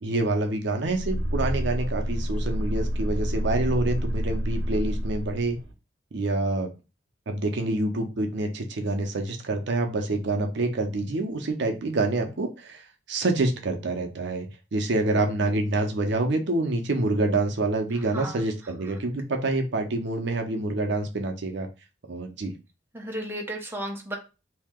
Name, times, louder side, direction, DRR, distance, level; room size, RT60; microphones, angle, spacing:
voice 1, 0.0-5.6 6.1-6.7 7.3-21.7 22.1-22.5, right 2 dB, 65° right, 4 dB, 0.6 m, -27 dB
sound 1, 0.8-5.7, equal, 80° right, 0.9 m, -28 dB
voice 2, 22.9-24.2, right 1 dB, 10° right, 0 dB, 0.7 m, -33 dB
2.8 x 2.7 x 3.5 m, 0.30 s
head